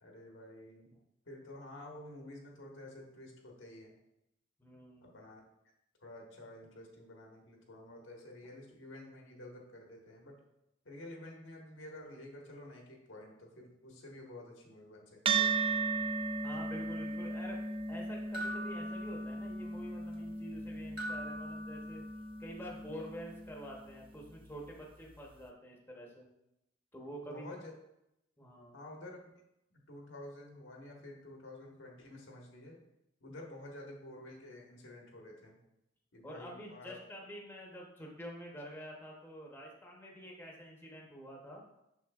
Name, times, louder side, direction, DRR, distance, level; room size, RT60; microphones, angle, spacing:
voice 1, 0.0-0.9 1.3-3.9 5.0-5.4 6.0-10.4 10.8-15.5 27.2-27.7 28.7-29.3 29.9-32.8 33.2-35.6 36.1-37.0, left 1 dB, 85° left, 0 dB, 1.4 m, -50 dB
voice 2, 4.6-5.1 16.4-17.6 17.9-22.1 22.4-26.3 26.9-27.6 28.4-28.8 36.2-41.6, equal, 10° left, -1 dB, 0.8 m, -47 dB
sound 1, 15.3-23.9, right 4 dB, 25° right, 0.3 m, -36 dB
sound 2, 18.3-19.8 21.0-22.4, right 1 dB, 55° right, 1.2 m, -43 dB
6.6 x 6.2 x 2.4 m, 0.84 s
head